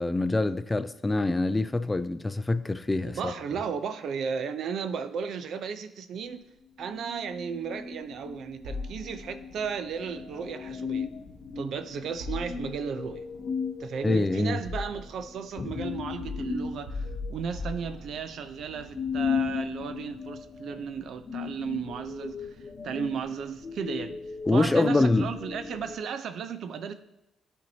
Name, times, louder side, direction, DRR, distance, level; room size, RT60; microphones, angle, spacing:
voice 1, 0.0-3.3 14.0-14.6 24.5-25.3, left 2 dB, 15° left, 0.3 m, -25 dB
voice 2, 3.0-6.4 6.8-11.1 11.6-13.3 13.8-22.5 22.8-24.2 24.5-26.9, right 6 dB, 70° right, 0.5 m, -34 dB
sound 1, 6.8-26.0, left 6 dB, 40° left, 0.7 m, -37 dB
sound 2, 8.6-9.5 12.2-13.1 14.0-15.3 16.2-18.4, left 3 dB, 90° right, 1.6 m, -38 dB
11.5 x 4.5 x 2.8 m
cardioid pair, 90°, 0 cm